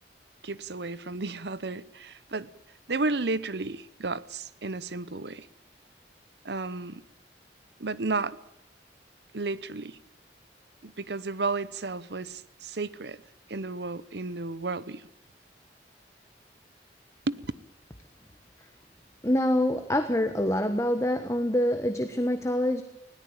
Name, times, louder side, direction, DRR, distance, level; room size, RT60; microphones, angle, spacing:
voice 1, 0.4-2.5 2.9-5.5 6.4-7.0 7.8-8.4 9.3-10.0 10.8-13.2 13.5-15.1 17.3-17.4, right 3 dB, 65° right, 18 dB, 0.9 m, -32 dB
voice 2, 19.2-22.8, left 1 dB, 15° left, 8 dB, 1.2 m, -25 dB
20.0 x 17.5 x 8.8 m, 0.84 s
head